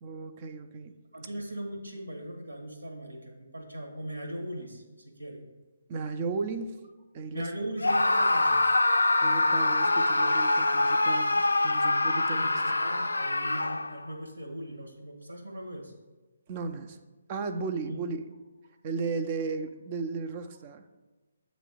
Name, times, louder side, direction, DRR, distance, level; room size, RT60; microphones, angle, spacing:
voice 1, 0.0-0.9 5.9-6.8 7.1-7.5 9.2-12.4 16.5-17.0 17.3-18.2 18.8-20.8, right 4 dB, 30° right, 9 dB, 0.5 m, -35 dB
voice 2, 1.1-5.4 7.3-8.6 12.1-15.9 17.8-18.0, right 1 dB, 80° right, 2 dB, 1.5 m, -39 dB
Screaming, 7.8-14.1, left 2 dB, 80° left, 0.3 m, -25 dB
8.0 x 3.1 x 6.3 m, 1.2 s
figure-of-eight pair, 140°, 0 cm